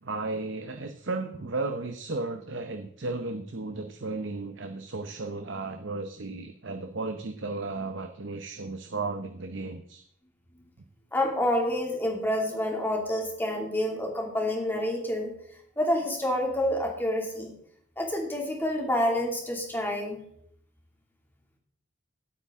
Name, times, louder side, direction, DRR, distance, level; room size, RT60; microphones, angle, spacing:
voice 1, 0.0-10.0, right 3 dB, 55° right, 7 dB, 0.8 m, -34 dB
voice 2, 11.1-15.3 15.8-17.5 18.0-20.2, left 1 dB, 10° left, 0 dB, 2.4 m, -28 dB
16.5 x 8.6 x 3.7 m, 0.68 s
head